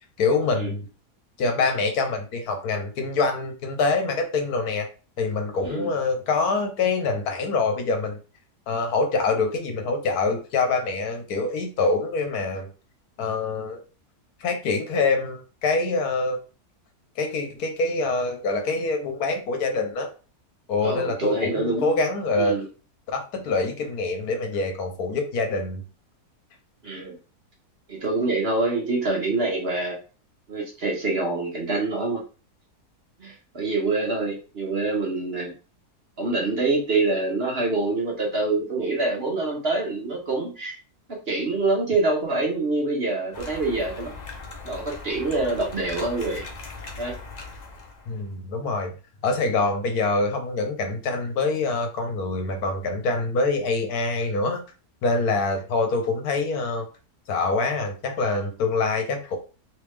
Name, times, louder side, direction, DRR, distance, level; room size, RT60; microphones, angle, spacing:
voice 1, 0.2-0.9 1.4-4.9 5.2-8.2 8.7-12.7 13.2-13.8 14.4-16.4 17.2-20.1 20.7-22.6 23.1-25.8 48.1-48.9 49.2-54.6 55.0-56.9 57.3-59.4, left 3 dB, 70° left, 5 dB, 1.2 m, -25 dB
voice 2, 20.8-21.9 22.4-22.6 26.8-27.1 27.9-29.9 30.5-32.2 33.2-35.5 36.2-40.8 41.1-44.1 44.6-46.4 47.0-47.2, right 3 dB, 45° right, -1 dB, 1.1 m, -25 dB
sound 1, 43.3-48.3, left 3 dB, 55° left, 0.4 m, -39 dB
3.4 x 3.1 x 3.2 m, 0.35 s
omnidirectional pair, 1.7 m